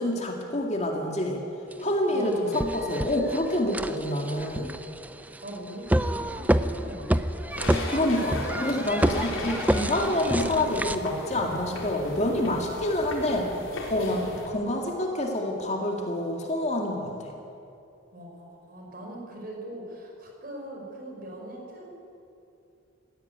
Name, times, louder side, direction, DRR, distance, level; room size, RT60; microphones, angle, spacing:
voice 1, 0.0-1.4 1.8-4.7 7.9-13.5 13.9-17.3, left 1 dB, 35° left, 1 dB, 2.2 m, -27 dB
sound 1, 1.7-1.8 2.3-11.0, right 1 dB, 10° right, 0.5 m, -28 dB
voice 2, 1.8-2.6 5.4-7.4 14.1-14.3 18.1-21.9, equal, 45° right, 0 dB, 4.9 m, -40 dB
sound 2, 7.5-14.5, left 1 dB, 75° left, 3.9 m, -36 dB
17.5 x 15.5 x 9.5 m, 2.7 s
head